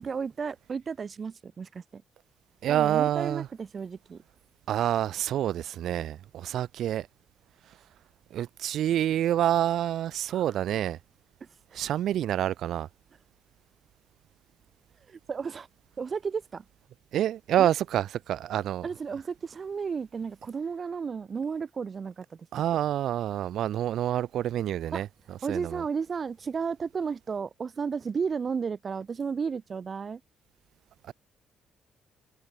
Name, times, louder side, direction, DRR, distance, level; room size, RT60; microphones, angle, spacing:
voice 1, 0.0-2.0 2.7-4.2 10.3-10.6 11.7-11.8 15.1-15.7 16.0-16.6 17.6-17.7 18.8-22.4 24.9-25.0 25.4-30.2, right 6 dB, 40° right, 4.2 m, -33 dB
voice 2, 2.6-3.5 4.7-7.1 8.3-11.0 11.7-12.9 17.1-18.9 22.5-25.1 25.5-25.8 31.1-31.2, right 11 dB, 75° right, 5.4 m, -27 dB
cardioid pair, 90°, 0 cm